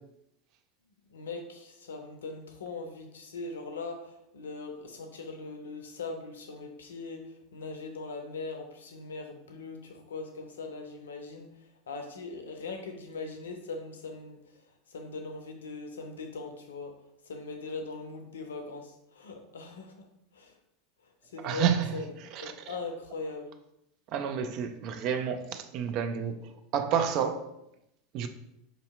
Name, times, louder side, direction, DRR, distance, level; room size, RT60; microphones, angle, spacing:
voice 1, 1.1-11.5 11.9-14.4 14.9-17.0 17.3-20.1 20.3-20.5 21.3-22.0 22.4-23.5, left 3 dB, 70° left, 0.5 m, -40 dB
voice 2, 21.4-21.9 22.2-22.8 24.1-27.5 28.1-28.3, right 8 dB, 45° right, 0.4 m, -30 dB
4.9 x 2.7 x 2.4 m
figure-of-eight pair, 80°, 0 cm